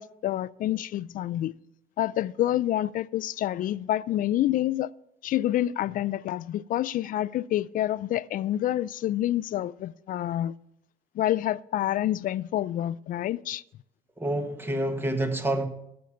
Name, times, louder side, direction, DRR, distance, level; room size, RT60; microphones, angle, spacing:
voice 1, 0.0-1.5 2.0-4.9 5.2-10.5 11.2-13.6, left 13 dB, 55° left, 0.4 m, -28 dB
voice 2, 14.2-15.7, right 1 dB, 15° right, 1.3 m, -28 dB
13.5 x 6.5 x 5.7 m
cardioid pair, 110°, 17 cm